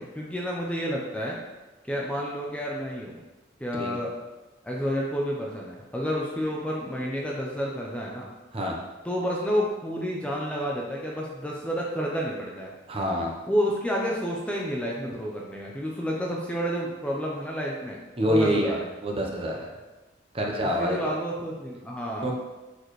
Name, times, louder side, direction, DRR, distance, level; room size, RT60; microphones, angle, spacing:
voice 1, 0.0-1.4 1.8-3.2 3.6-4.1 4.6-8.3 9.0-12.7 13.5-18.0 18.3-18.9 20.6-22.3, equal, 5° left, -3 dB, 0.7 m, -30 dB
voice 2, 12.9-13.4 18.2-18.7 19.0-19.7 20.3-21.1 22.2-22.3, equal, 30° right, -1 dB, 0.9 m, -26 dB
6.6 x 4.7 x 3.2 m, 1.1 s
head